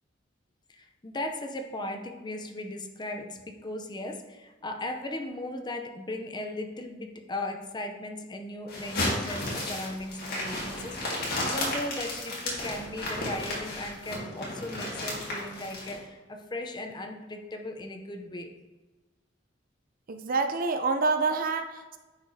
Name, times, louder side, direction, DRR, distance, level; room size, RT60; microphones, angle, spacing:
voice 1, 0.7-18.5, left 1 dB, 20° left, 4 dB, 0.6 m, -37 dB
sound 1, 8.7-15.9, left 1 dB, 55° left, 2.0 m, -33 dB
voice 2, 20.1-22.0, right 4 dB, 45° right, 7 dB, 0.4 m, -27 dB
9.8 x 4.8 x 2.8 m, 1.2 s
head